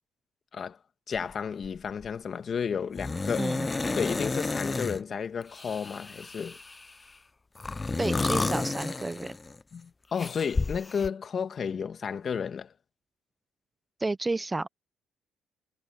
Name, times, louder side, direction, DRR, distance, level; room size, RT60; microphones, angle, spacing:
voice 1, 1.1-3.5 3.9-6.6 9.7-12.7, left 6 dB, 50° left, 2.0 m, -32 dB
sound 1, 1.2-1.3 1.6-2.1 3.0-5.0 5.5-6.9 7.6-9.6 10.2-11.1, left 3 dB, 25° left, 0.5 m, -31 dB
voice 2, 3.4-3.7 8.0-9.4 14.0-14.7, right 2 dB, 20° right, 0.6 m, -31 dB
supercardioid pair, 70°, 0 cm